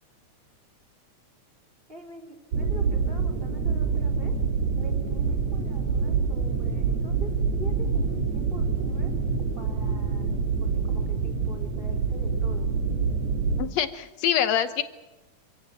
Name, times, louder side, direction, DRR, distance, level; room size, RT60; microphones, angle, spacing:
voice 1, 1.9-4.3 4.8-9.1 9.6-12.7, equal, 15° right, 0 dB, 3.4 m, -45 dB
sound 1, 2.5-13.6, right 5 dB, 60° right, 3.0 m, -26 dB
voice 2, 13.6-14.8, left 10 dB, 65° left, 11 dB, 1.9 m, -25 dB
26.0 x 17.0 x 7.6 m, 1.1 s
omnidirectional pair, 3.6 m